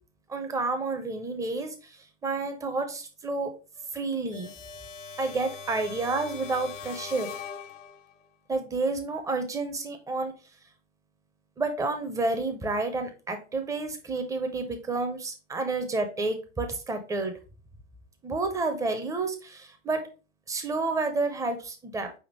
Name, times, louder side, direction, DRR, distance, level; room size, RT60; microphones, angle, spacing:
voice 1, 0.3-3.5 3.9-4.5 5.2-7.3 8.5-10.3 11.6-17.4 18.2-20.0 20.5-22.1, right 3 dB, 10° right, 6 dB, 0.6 m, -30 dB
sound 1, 4.3-8.2, left 5 dB, 75° left, 0.6 m, -41 dB
4.9 x 3.5 x 3.1 m, 0.33 s
figure-of-eight pair, 95°, 37 cm